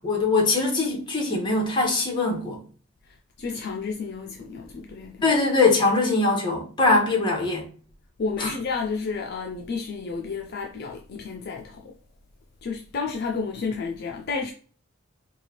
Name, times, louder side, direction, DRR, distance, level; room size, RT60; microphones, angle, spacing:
voice 1, 0.0-2.6 5.2-7.7 8.4-8.5, left 3 dB, 25° left, 1.2 m, -22 dB
voice 2, 3.0-5.3 7.2-7.3 8.2-12.0 12.6-14.5, left 4 dB, 50° left, 0.4 m, -31 dB
4.6 x 2.3 x 2.9 m
head